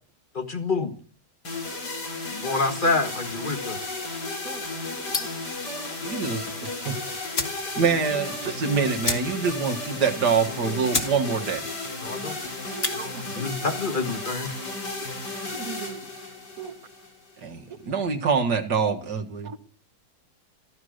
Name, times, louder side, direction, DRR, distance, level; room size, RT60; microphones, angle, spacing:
voice 1, 0.3-0.9 2.3-3.8 12.0-12.4 13.4-14.6, left 3 dB, 30° left, 1.9 m, -27 dB
sound 1, 1.5-17.5, left 2 dB, 85° left, 4.5 m, -34 dB
sound 2, 5.1-5.5 6.8-6.9 7.3-7.7 8.0-8.1 8.3-8.5 9.0-9.6 9.9-10.0 10.5-10.6 10.9-11.2 11.5-11.9 12.6-13.0, left 3 dB, 45° left, 2.4 m, -29 dB
voice 2, 6.0-6.4 6.9-7.0 7.8-11.7 17.4-19.5, right 5 dB, 80° right, 2.2 m, -25 dB
voice 3, 12.7-13.5 15.5-16.0 16.6-16.7, right 6 dB, 60° right, 1.8 m, -38 dB
14.5 x 14.0 x 6.5 m
omnidirectional pair, 1.8 m